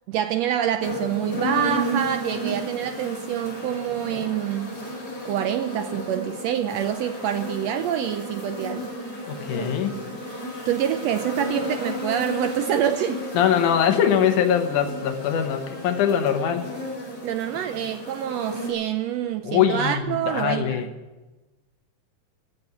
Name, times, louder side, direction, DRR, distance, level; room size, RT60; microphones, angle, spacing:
voice 1, 0.1-4.8 5.2-8.9 10.7-13.2 17.2-20.9, right 10 dB, 80° right, 9 dB, 1.5 m, -26 dB
sound 1, 0.8-18.7, equal, 20° left, 5.0 m, -33 dB
voice 2, 9.3-10.0 13.3-16.7 19.4-20.9, left 8 dB, 80° left, 7 dB, 2.5 m, -22 dB
14.5 x 6.8 x 9.4 m, 1.2 s
omnidirectional pair, 3.5 m